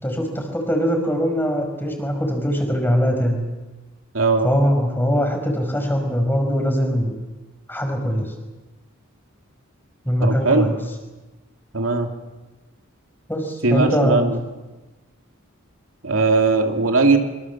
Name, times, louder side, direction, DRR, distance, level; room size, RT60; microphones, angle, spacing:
voice 1, 0.0-3.4 4.4-7.1 7.7-8.3 10.0-10.8 13.3-14.3, equal, 10° left, 3 dB, 5.0 m, -22 dB
voice 2, 4.1-4.5 10.2-10.7 11.7-12.1 13.6-14.4 16.0-17.2, right 3 dB, 70° right, 4 dB, 2.5 m, -18 dB
25.5 x 25.0 x 7.3 m, 1.2 s
head